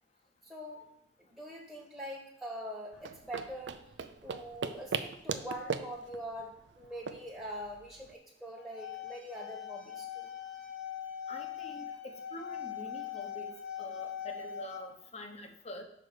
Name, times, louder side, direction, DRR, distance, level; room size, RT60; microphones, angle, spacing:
voice 1, 0.4-0.9 1.2-3.8 4.2-10.3, equal, 10° right, -3 dB, 1.3 m, -43 dB
sound 1, 2.9-8.1, right 5 dB, 85° right, 0.5 m, -39 dB
sound 2, 8.6-14.8, left 9 dB, 90° left, 1.1 m, -41 dB
voice 2, 11.3-15.8, left 2 dB, 40° left, 4 dB, 1.0 m, -46 dB
6.1 x 4.8 x 6.5 m, 0.74 s
head